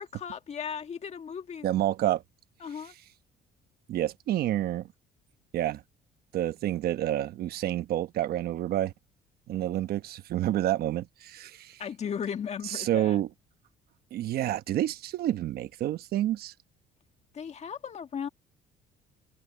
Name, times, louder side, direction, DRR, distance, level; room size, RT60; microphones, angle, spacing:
voice 1, 0.0-1.7 2.6-2.9 11.8-13.2 17.3-18.3, left 7 dB, 40° left, 1.8 m, -36 dB
voice 2, 1.6-2.2 3.9-4.9 5.5-5.8 6.3-8.9 9.5-11.8 12.7-13.3 14.1-16.5, right 13 dB, 65° right, 1.0 m, -29 dB
cardioid pair, 110°, 17 cm